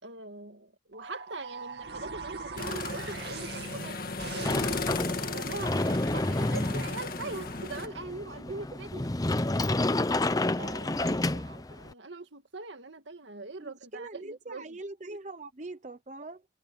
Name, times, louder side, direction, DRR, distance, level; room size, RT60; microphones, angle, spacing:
voice 1, 0.0-9.1 10.6-14.7 15.1-15.2, right 3 dB, 80° right, 2.1 m, -42 dB
sound 1, 0.9-5.5, right 4 dB, 60° right, 2.6 m, -42 dB
sound 2, 2.6-7.9, left 3 dB, 50° left, 2.0 m, -36 dB
Sliding door, 4.4-11.9, left 2 dB, 20° left, 0.6 m, -30 dB
voice 2, 13.6-16.5, right 2 dB, 40° right, 0.9 m, -42 dB
head